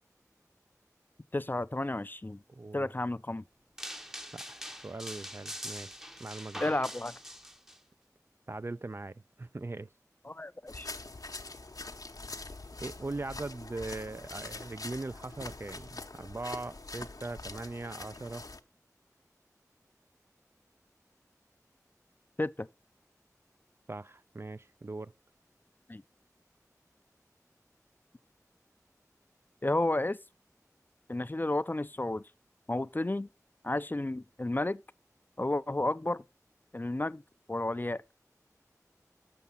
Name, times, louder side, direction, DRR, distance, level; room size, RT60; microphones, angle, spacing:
voice 1, 1.3-2.4 2.7-3.4 6.6-7.1 10.2-10.9 22.4-22.7 25.9-26.0 29.6-30.2 31.1-32.2 32.7-33.3 33.6-34.8 35.4-36.2 36.7-37.2 37.5-38.0, left 2 dB, 30° left, 0.4 m, -32 dB
voice 2, 2.5-2.9 4.3-5.9 6.2-6.6 8.5-9.9 12.8-18.4 23.9-25.1, right 2 dB, 45° right, 0.3 m, -40 dB
sound 1, 3.8-7.8, equal, 10° right, 0.7 m, -43 dB
sound 2, 10.7-18.6, left 3 dB, 80° left, 0.7 m, -44 dB
6.9 x 5.8 x 5.4 m
wide cardioid pair, 40°, 6 cm